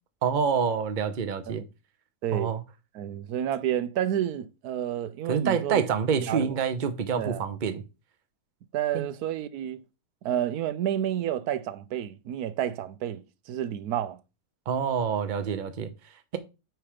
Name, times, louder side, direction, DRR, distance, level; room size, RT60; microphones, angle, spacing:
voice 1, 0.2-1.6 2.3-2.6 5.3-7.8 8.9-9.0 14.7-15.9, right 6 dB, 40° right, 0.8 m, -27 dB
voice 2, 2.2-2.5 2.9-5.8 6.2-6.5 7.1-7.5 8.7-9.8 10.2-14.2, right 10 dB, 80° right, 1.1 m, -30 dB
9.1 x 3.4 x 5.0 m
omnidirectional pair, 1.6 m